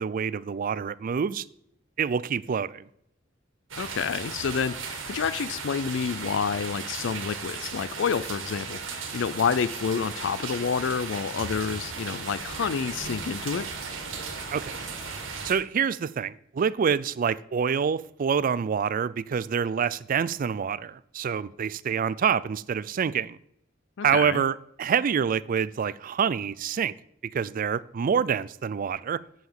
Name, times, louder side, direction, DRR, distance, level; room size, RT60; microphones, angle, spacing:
voice 1, 0.0-1.5 2.0-2.8 14.5-14.7 15.4-23.4 24.0-26.9 27.3-29.2, right 7 dB, 45° right, 0.4 m, -26 dB
sound 1, 3.7-15.5, right 5 dB, 90° right, 1.8 m, -36 dB
voice 2, 3.8-13.6 24.0-24.4, left 6 dB, 70° left, 0.4 m, -29 dB
8.7 x 5.8 x 7.2 m
head